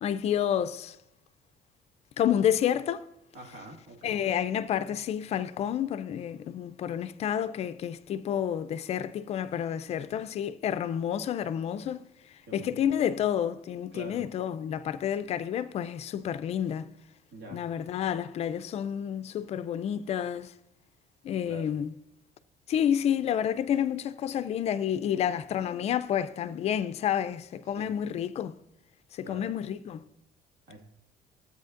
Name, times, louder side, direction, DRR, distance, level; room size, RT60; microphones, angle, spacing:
voice 1, 0.0-1.0 2.2-3.1 4.0-12.1 12.5-16.9 17.5-20.5 21.2-21.9 22.7-28.6 29.1-30.0, left 9 dB, 40° left, 0.4 m, -29 dB
voice 2, 3.3-4.2 12.5-12.9 13.9-14.2 17.3-17.7 21.5-21.7 27.8-27.9 29.2-29.5 30.7-30.8, right 2 dB, 85° right, 2.1 m, -45 dB
13.0 x 8.2 x 2.5 m
cardioid pair, 160°, 16 cm